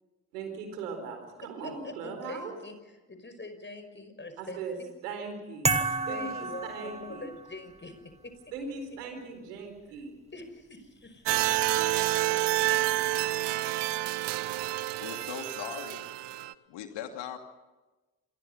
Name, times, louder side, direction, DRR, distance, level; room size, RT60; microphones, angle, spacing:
voice 1, 0.3-2.5 4.4-4.7 5.0-5.7 6.1-7.3 8.5-10.1, right 4 dB, 80° right, 6 dB, 4.4 m, -39 dB
voice 2, 1.4-4.6 6.1-8.4 10.3-11.5, left 2 dB, 25° left, 9 dB, 5.8 m, -44 dB
sound 1, 5.6-7.6, right 3 dB, 15° right, 2.5 m, -30 dB
sound 2, 11.3-16.5, right 17 dB, 60° right, 1.0 m, -28 dB
voice 3, 15.0-16.1 16.7-17.4, left 9 dB, 65° left, 6 dB, 2.6 m, -39 dB
27.5 x 22.5 x 5.6 m, 1.1 s
figure-of-eight pair, 40°, 46 cm